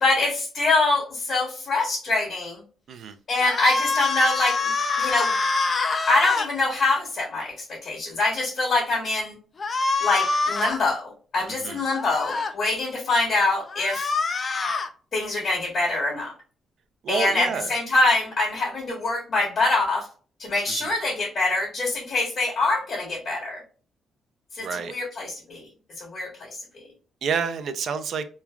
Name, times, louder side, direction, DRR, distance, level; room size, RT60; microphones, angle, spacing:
voice 1, 0.0-2.6 3.3-4.7 5.0-5.3 6.1-9.3 10.0-14.1 15.1-16.3 17.1-20.1 20.4-23.6 24.5-25.7 26.0-26.5, left 2 dB, 55° left, -5 dB, 1.3 m, -24 dB
sound 1, 3.4-6.5 9.6-10.8 11.9-12.5 13.7-14.9, left 4 dB, 40° left, 0.4 m, -25 dB
voice 2, 11.5-11.8 17.0-17.7 20.7-20.9 24.6-24.9 27.2-28.2, right 6 dB, 65° right, 9 dB, 0.4 m, -29 dB
3.1 x 2.3 x 2.3 m, 0.39 s
cardioid pair, 100°, 0 cm